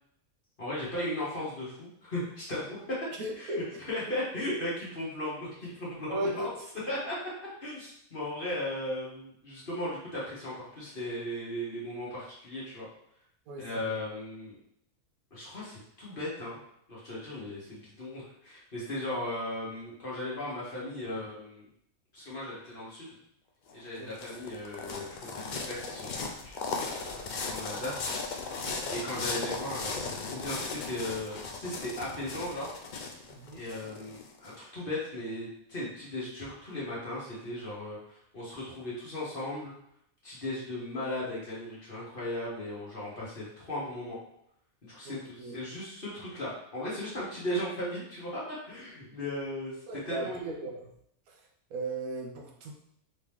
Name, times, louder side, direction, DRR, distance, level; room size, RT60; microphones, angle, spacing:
voice 1, 0.6-2.8 3.4-6.5 6.9-7.2 7.6-12.9 13.6-14.6 15.3-16.6 16.9-21.6 22.1-23.1 23.7-28.0 28.9-32.7 33.5-39.7 40.2-44.2 44.8-49.7 50.1-50.6, left 1 dB, 40° left, -7 dB, 1.6 m, -37 dB
voice 2, 3.2-3.8 4.1-4.2 6.1-6.5 13.5-14.0 24.0-24.2 27.8-27.9 29.1-29.3 33.3-33.6 45.0-45.5 49.9-50.9 51.3-51.4 51.7-52.7, right 1 dB, 80° right, 1 dB, 1.2 m, -37 dB
sound 1, 23.7-34.5, left 4 dB, 80° left, 0.4 m, -37 dB
4.0 x 3.1 x 3.5 m, 0.72 s
omnidirectional pair, 1.5 m